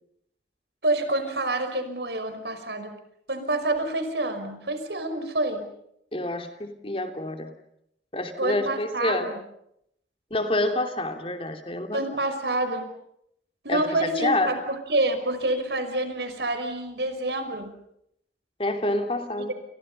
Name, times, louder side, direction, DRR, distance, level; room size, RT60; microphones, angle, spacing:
voice 1, 0.8-2.9 3.3-5.7 8.4-9.4 11.9-12.9 13.6-17.7 19.5-19.6, right 2 dB, 75° right, 8 dB, 5.5 m, -27 dB
voice 2, 6.1-7.5 8.1-9.3 10.3-12.0 13.7-14.6 18.6-19.5, left 1 dB, 30° left, 6 dB, 3.0 m, -27 dB
30.0 x 30.0 x 5.5 m, 0.75 s
head